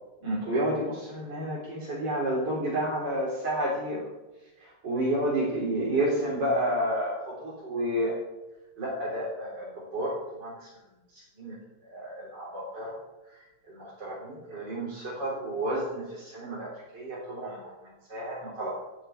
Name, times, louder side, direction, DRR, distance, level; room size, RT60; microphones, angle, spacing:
voice 1, 0.2-4.1 4.6-8.2 8.8-10.7 11.1-11.6 11.8-12.9 13.7-17.7 18.1-18.8, right 1 dB, 50° right, -7 dB, 4.4 m, -30 dB
13.0 x 9.3 x 9.4 m, 1.1 s
omnidirectional pair, 2.4 m